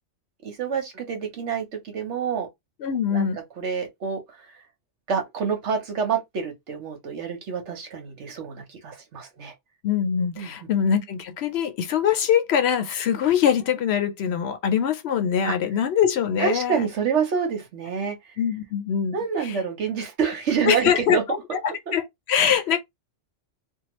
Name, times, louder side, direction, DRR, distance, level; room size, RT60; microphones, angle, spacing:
voice 1, 0.4-2.5 3.1-3.3 3.6-4.6 5.1-9.5 10.4-10.5 15.4-15.5 16.4-18.4 19.1-21.4 21.9-22.0, right 6 dB, 75° right, 1.2 m, -27 dB
voice 2, 2.8-3.4 9.8-16.9 18.4-19.1 19.4-19.6 20.7-21.2 21.9-22.8, left 8 dB, 70° left, 0.8 m, -23 dB
2.8 x 2.3 x 2.9 m
omnidirectional pair, 1.2 m